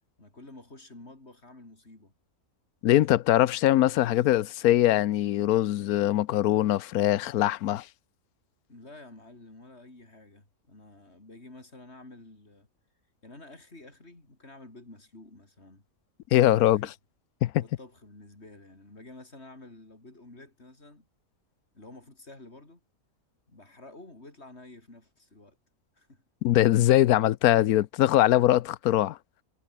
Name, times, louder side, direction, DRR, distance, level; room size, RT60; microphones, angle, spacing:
voice 1, 0.2-2.1 8.7-12.7 13.2-15.8 16.4-16.9 17.6-21.1 21.7-22.8 23.5-25.6 25.9-26.2, left 2 dB, 45° left, 5.4 m, -50 dB
voice 2, 2.8-7.9 16.3-16.9 17.4-17.6 26.4-29.2, left 14 dB, 90° left, 1.1 m, -22 dB
omnidirectional pair, 1.5 m